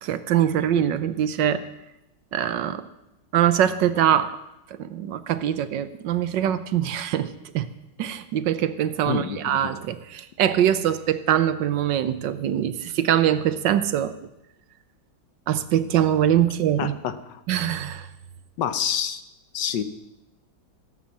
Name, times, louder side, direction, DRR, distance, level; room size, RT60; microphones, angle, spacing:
voice 1, 0.0-1.6 2.3-2.8 3.3-4.4 4.7-7.7 8.0-14.1 15.5-16.9 17.5-18.1, right 10 dB, 75° right, 13 dB, 1.4 m, -23 dB
voice 2, 9.1-9.7 16.8-17.4 18.6-19.2 19.5-19.8, left 9 dB, 70° left, 11 dB, 1.5 m, -28 dB
17.0 x 8.6 x 7.3 m, 0.89 s
omnidirectional pair, 2.1 m